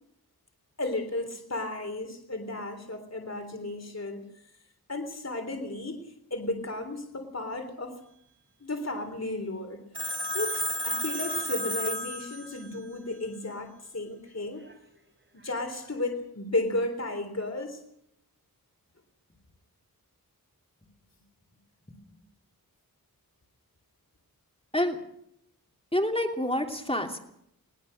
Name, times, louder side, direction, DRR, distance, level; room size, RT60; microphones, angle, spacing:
voice 1, 0.8-4.3 4.9-8.0 8.6-9.8 10.3-14.7 15.3-17.8, left 2 dB, 45° left, 5 dB, 3.6 m, -34 dB
Telephone, 9.9-12.8, equal, 30° right, 4.2 m, -32 dB
voice 2, 25.9-27.2, left 1 dB, 15° left, 3 dB, 2.9 m, -28 dB
21.0 x 20.5 x 6.6 m, 0.74 s
wide cardioid pair, 60°, 36 cm